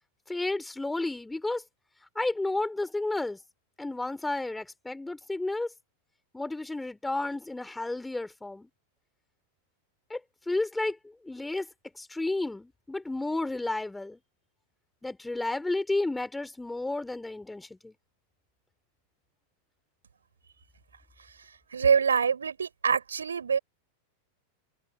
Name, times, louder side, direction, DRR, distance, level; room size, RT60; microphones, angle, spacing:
voice 1, 0.3-1.6 2.1-3.4 3.8-5.7 6.3-8.7 10.1-10.2 10.5-11.0 11.2-11.7 12.0-14.2 15.0-17.9, left 2 dB, 5° left, 4.6 m, -32 dB
voice 2, 21.7-23.6, right 6 dB, 70° right, 5.6 m, -25 dB
figure-of-eight pair, 90°, 0 cm